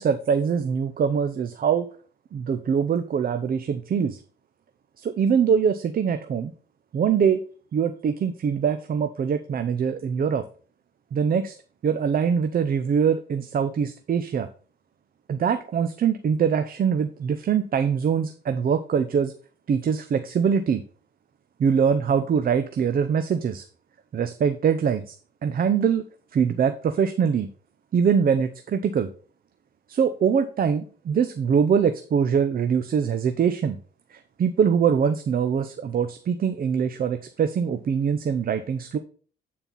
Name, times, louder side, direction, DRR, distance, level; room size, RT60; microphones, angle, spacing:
voice 1, 0.0-1.9 2.3-4.2 5.0-6.5 6.9-7.4 7.7-10.4 11.1-11.5 11.8-14.5 15.3-19.3 19.7-20.8 21.6-23.6 24.1-25.1 25.4-26.0 26.3-27.5 27.9-29.1 29.9-33.8 34.1-39.0, right 7 dB, 45° right, 9 dB, 0.7 m, -23 dB
9.1 x 4.3 x 5.5 m, 0.42 s
cardioid pair, 90°, 20 cm